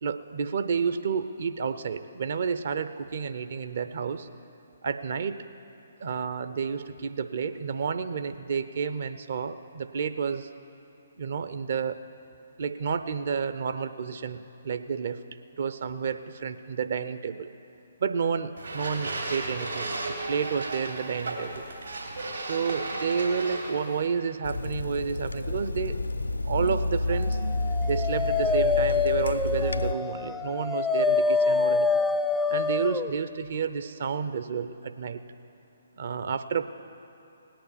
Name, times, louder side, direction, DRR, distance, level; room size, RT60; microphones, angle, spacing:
voice 1, 0.0-4.3 4.8-5.4 6.0-10.5 11.2-12.0 12.6-15.2 15.6-17.5 18.0-21.7 22.3-26.0 26.4-27.4 27.9-31.9 32.5-35.2 36.0-36.6, right 6 dB, 50° right, 10 dB, 0.7 m, -30 dB
sound 1, 18.6-24.1, right 2 dB, 75° right, 2.9 m, -34 dB
Water tap faucet / Sink (filling or washing), 24.4-29.9, left 2 dB, 80° left, 0.6 m, -30 dB
Dog, 27.5-33.1, left 4 dB, 10° left, 0.4 m, -26 dB
18.5 x 8.8 x 7.2 m, 2.9 s
figure-of-eight pair, 135°, 0 cm